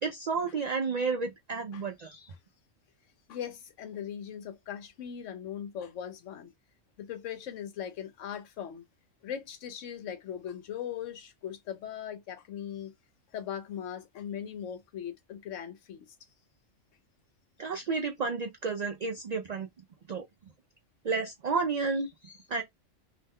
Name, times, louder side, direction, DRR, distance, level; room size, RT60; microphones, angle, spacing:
voice 1, 0.0-2.3 17.6-19.7 20.1-20.2 21.0-22.6, right 4 dB, 85° right, 0.3 m, -31 dB
voice 2, 3.3-6.5 7.0-8.8 9.2-12.9 13.3-16.1, left 9 dB, 75° left, 1.0 m, -39 dB
2.6 x 2.1 x 3.5 m
omnidirectional pair, 1.3 m